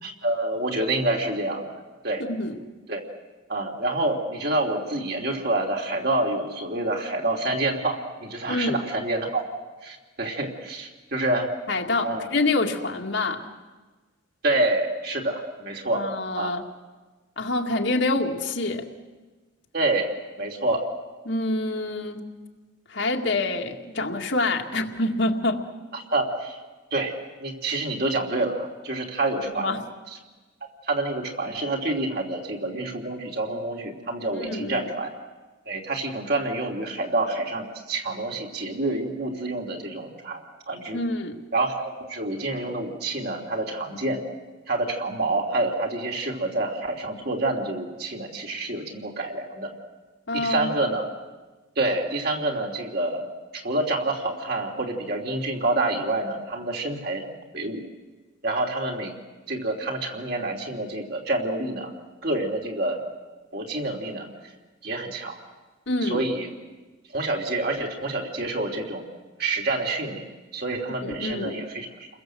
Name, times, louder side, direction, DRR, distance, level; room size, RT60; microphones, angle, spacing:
voice 1, 0.0-2.2 2.9-3.0 3.5-9.4 9.8-11.5 12.0-12.3 14.4-16.1 16.4-16.5 19.7-20.1 20.4-20.8 26.1-26.6 26.9-27.1 27.4-29.8 30.8-35.1 35.7-41.0 41.5-44.2 44.7-49.7 50.4-51.1 51.8-53.3 53.5-57.2 57.5-57.8 58.4-59.1 59.5-61.9 62.2-63.0 63.5-64.3 64.8-65.4 66.0-66.5 67.1-69.1 69.4-70.3 70.5-72.1, right 2 dB, 50° right, 1 dB, 3.2 m, -27 dB
voice 2, 8.5-8.8 11.7-13.4 15.9-16.6 17.4-18.9 21.3-22.2 22.9-25.6 29.4-29.8 34.4-34.9 40.9-41.4 50.3-50.8 65.9-66.3 71.0-71.5, left 2 dB, 65° left, 2 dB, 2.2 m, -26 dB
30.0 x 21.0 x 7.8 m, 1.3 s
head